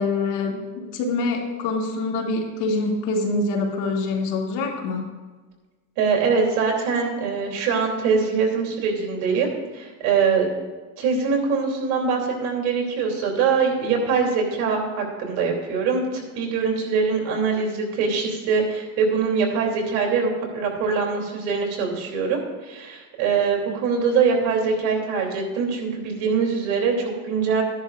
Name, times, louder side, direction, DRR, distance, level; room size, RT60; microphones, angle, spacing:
voice 1, 0.0-5.0, left 3 dB, 65° left, 0 dB, 2.4 m, -25 dB
voice 2, 6.0-10.5 11.0-27.6, right 5 dB, 70° right, 0 dB, 2.9 m, -23 dB
14.0 x 10.5 x 2.4 m, 1.3 s
supercardioid pair, 110°, 46 cm